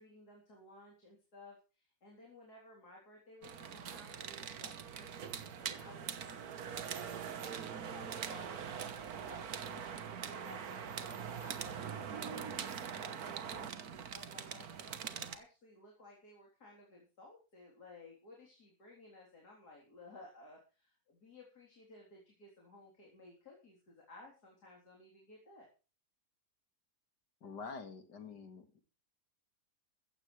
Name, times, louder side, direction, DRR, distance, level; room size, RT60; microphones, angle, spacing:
voice 1, 0.0-5.3 5.6-25.7, left 2 dB, 70° left, -2 dB, 4.3 m, -57 dB
sound 1, 3.4-15.4, right 7 dB, 65° right, 1.7 m, -43 dB
voice 2, 27.4-28.8, left 4 dB, 85° left, 7 dB, 2.7 m, -47 dB
15.5 x 14.5 x 3.3 m, 0.34 s
omnidirectional pair, 1.7 m